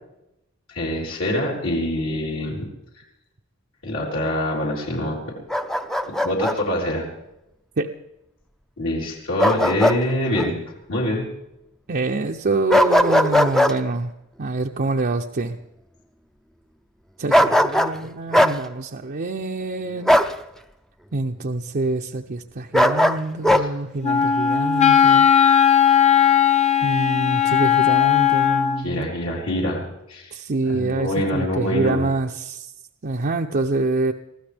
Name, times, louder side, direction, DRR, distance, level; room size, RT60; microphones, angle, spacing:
voice 1, 0.7-2.7 3.8-5.4 6.1-7.0 8.8-10.6 10.9-11.2 23.4-23.7 28.8-30.3 30.7-32.1, left 1 dB, 75° left, -4 dB, 4.0 m, -25 dB
Bark, 5.5-6.6 9.4-10.0 10.4-10.5 12.7-13.8 17.3-18.0 18.3-18.6 20.1-20.3 22.7-23.7, left 1 dB, ahead, 0.6 m, -18 dB
voice 2, 11.9-14.1 14.4-15.6 17.2-20.2 21.1-25.3 26.8-29.1 30.3-32.7 33.0-34.1, right 2 dB, 45° right, 2 dB, 0.7 m, -26 dB
Wind instrument woodwind instrument, 24.0-28.8, left 8 dB, 35° left, 1.1 m, -17 dB
23.0 x 15.0 x 3.5 m, 0.86 s
head